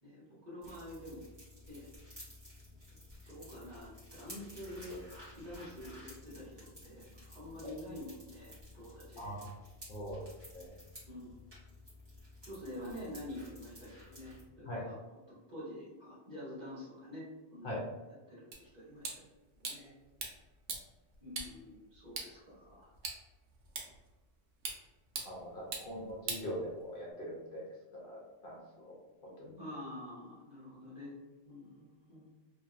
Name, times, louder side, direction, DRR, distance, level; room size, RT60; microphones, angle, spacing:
voice 1, 0.0-1.2 1.7-1.9 2.9-5.0 5.3-9.4 11.0-11.4 12.4-14.9 15.5-17.2 17.5-17.8 18.3-19.1 19.6-19.9 21.2-22.9 25.8-25.9 29.6-31.2 31.4-32.3, left 1 dB, 40° right, -9 dB, 1.4 m, -47 dB
sound 1, 0.6-14.4, left 1 dB, 25° right, 1.3 m, -53 dB
voice 2, 9.2-9.5 9.9-10.2 10.5-10.7 14.7-14.9 17.6-17.8 25.2-27.7 27.9-28.9 29.2-29.6, equal, 55° left, -3 dB, 0.8 m, -42 dB
sound 2, 18.5-27.1, right 4 dB, 90° right, 1.0 m, -45 dB
2.8 x 2.7 x 2.4 m, 1.2 s
omnidirectional pair, 1.1 m